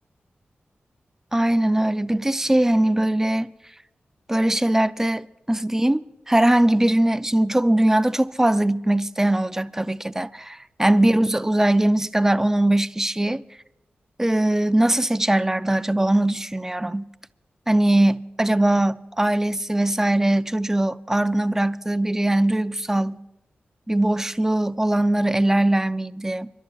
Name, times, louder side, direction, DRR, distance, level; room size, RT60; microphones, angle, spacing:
voice 1, 1.3-3.5 4.3-13.4 14.2-17.1 17.7-23.2 23.9-26.5, right 1 dB, 10° right, 0.4 m, -21 dB
30.0 x 12.0 x 2.4 m
wide cardioid pair, 80°, 4 cm